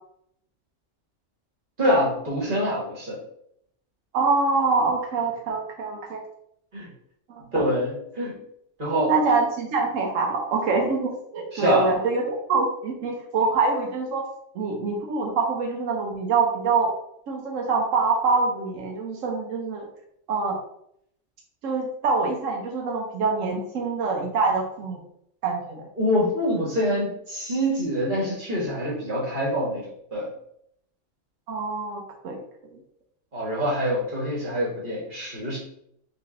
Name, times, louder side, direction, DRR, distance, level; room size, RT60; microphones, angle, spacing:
voice 1, 1.8-3.2 6.7-6.9 7.5-8.4 8.8-9.1 11.5-12.0 26.0-30.3 33.3-35.6, equal, 40° right, -4 dB, 1.5 m, -25 dB
voice 2, 4.1-6.2 9.1-14.2 14.5-16.9 17.3-19.8 20.3-20.6 21.6-25.0 25.4-25.8 31.5-32.4 32.7-32.8, right 4 dB, 85° right, 0 dB, 1.2 m, -25 dB
3.7 x 3.3 x 3.7 m, 0.71 s
omnidirectional pair, 1.3 m